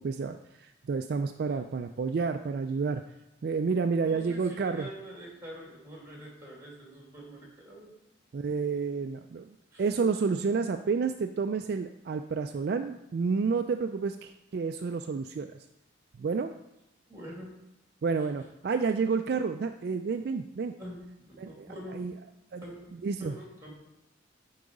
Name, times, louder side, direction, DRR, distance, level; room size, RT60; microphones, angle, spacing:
voice 1, 0.0-3.0 3.4-4.9 8.3-15.6 16.2-16.5 18.0-20.7 21.4-21.7 21.9-22.1 22.5-22.6 23.0-23.3, right 5 dB, 55° right, 7 dB, 0.3 m, -30 dB
voice 2, 3.9-7.9 9.7-9.9 17.1-17.6 20.8-22.2 22.6-23.7, equal, 15° right, -3 dB, 2.5 m, -45 dB
8.4 x 4.8 x 5.2 m, 0.89 s
head